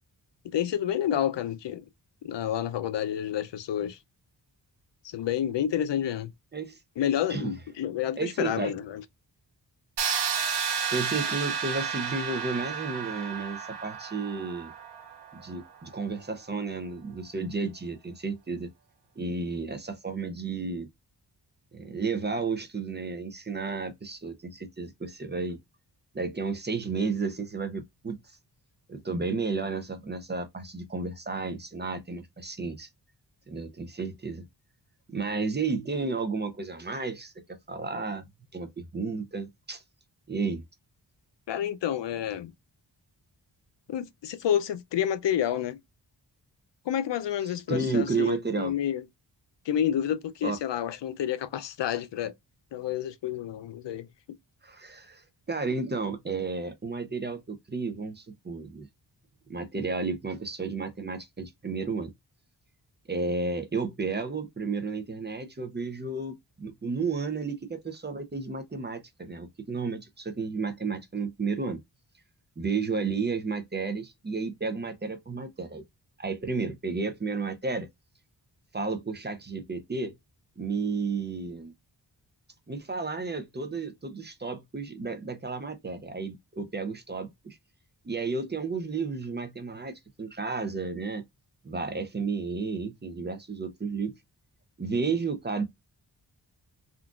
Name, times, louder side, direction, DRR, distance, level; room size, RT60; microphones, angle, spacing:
voice 1, 0.4-1.8 2.2-4.0 5.0-6.3 7.0-9.0 41.5-42.5 43.9-45.8 46.9-49.0 49.7-52.3 52.7-54.1, left 10 dB, 75° left, 0.5 m, -29 dB
voice 2, 8.2-8.7 10.9-14.7 15.3-18.7 19.2-20.9 21.7-25.6 26.1-28.2 28.9-32.9 33.5-34.4 35.1-38.3 38.5-39.8 40.3-40.6 47.5-48.7 50.4-50.6 54.6-58.9 59.5-62.1 63.1-71.8 72.6-75.8 76.2-77.9 78.7-80.1 80.6-81.7 82.7-87.6 88.0-91.2 91.6-94.2 94.8-95.6, right 4 dB, 25° right, 0.5 m, -32 dB
sound 1, 10.0-15.8, right 7 dB, 70° right, 0.9 m, -32 dB
3.8 x 2.3 x 2.3 m
wide cardioid pair, 175°, 43 cm